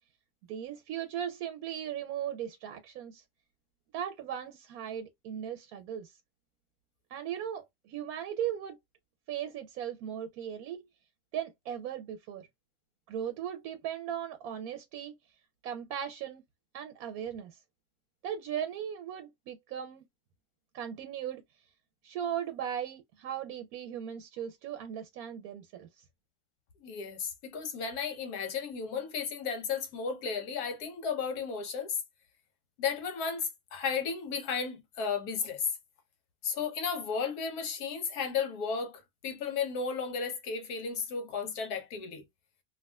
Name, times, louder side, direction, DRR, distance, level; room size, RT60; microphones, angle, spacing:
voice 1, 0.5-3.2 3.9-6.2 7.1-8.7 9.3-10.9 11.3-12.5 13.1-15.1 15.6-16.4 16.7-17.6 18.2-20.0 20.7-21.4 22.0-26.0, right 9 dB, 75° right, 1.0 m, -37 dB
voice 2, 26.8-32.0 32.8-35.7 36.4-42.2, left 6 dB, 75° left, 1.4 m, -34 dB
3.5 x 2.4 x 2.2 m
omnidirectional pair, 1.7 m